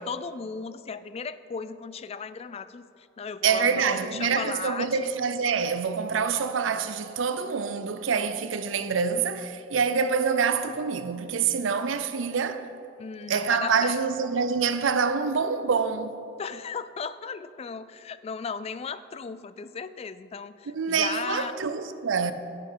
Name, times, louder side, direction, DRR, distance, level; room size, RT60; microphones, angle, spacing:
voice 1, 0.0-5.0 13.0-14.0 16.4-21.6, left 5 dB, 30° left, 0.3 m, -36 dB
voice 2, 3.4-12.7 13.3-16.1 20.7-22.3, right 6 dB, 80° right, 0.5 m, -26 dB
11.0 x 7.5 x 5.6 m
head